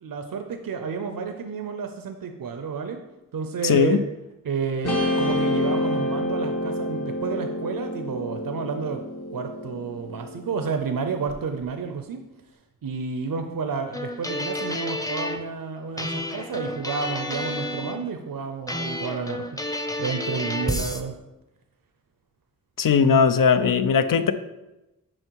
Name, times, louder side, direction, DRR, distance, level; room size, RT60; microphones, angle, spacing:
voice 1, 0.0-3.0 3.3-4.0 4.4-9.0 9.3-12.2 12.8-21.1, right 5 dB, 75° right, 6 dB, 0.6 m, -31 dB
voice 2, 3.6-4.0 22.8-24.3, left 6 dB, 70° left, 12 dB, 0.5 m, -19 dB
Guitar, 4.8-11.3, left 1 dB, 50° left, 1.1 m, -28 dB
sound 1, 13.9-15.4 16.0-18.0 18.7-21.0, left 1 dB, 10° left, 0.7 m, -30 dB
6.4 x 4.6 x 4.5 m, 0.99 s
cardioid pair, 45°, 34 cm